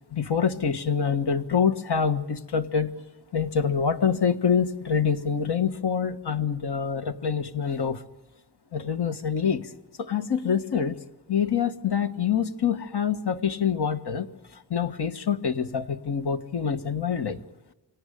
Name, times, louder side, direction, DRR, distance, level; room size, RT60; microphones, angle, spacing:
voice 1, 0.1-2.9 3.3-8.0 8.7-9.7 10.0-11.0 11.3-14.3 14.7-17.4, left 7 dB, 70° left, 7 dB, 1.6 m, -26 dB
26.0 x 18.0 x 9.9 m, 1.1 s
wide cardioid pair, 80°, 42 cm